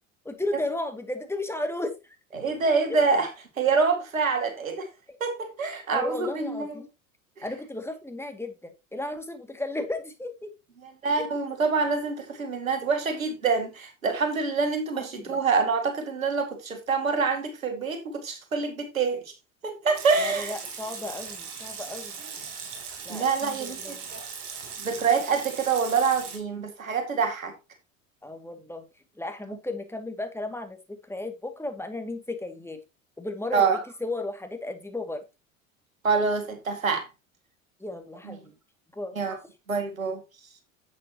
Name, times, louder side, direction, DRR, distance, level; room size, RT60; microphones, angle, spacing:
voice 1, 0.2-2.0 2.9-3.0 5.1-5.2 5.9-6.9 7.4-10.5 11.1-11.2 15.0-15.4 20.2-22.2 23.0-24.0 28.2-28.8 29.2-32.8 33.2-33.7 34.0-35.2 37.8-38.5 38.9-39.2, left 2 dB, 5° left, 2.3 m, -34 dB
voice 2, 2.3-3.3 3.6-4.9 5.2-6.8 10.8-19.3 19.6-20.6 23.1-24.2 24.8-27.5 33.5-33.8 36.0-37.1 38.2-38.4 39.2-39.4 39.7-40.2, right 5 dB, 85° right, 2.2 m, -26 dB
Water tap faucet / Sink (filling or washing) / Liquid, 19.9-26.4, right 6 dB, 60° right, 4.0 m, -39 dB
10.5 x 8.5 x 3.0 m
figure-of-eight pair, 70°, 40 cm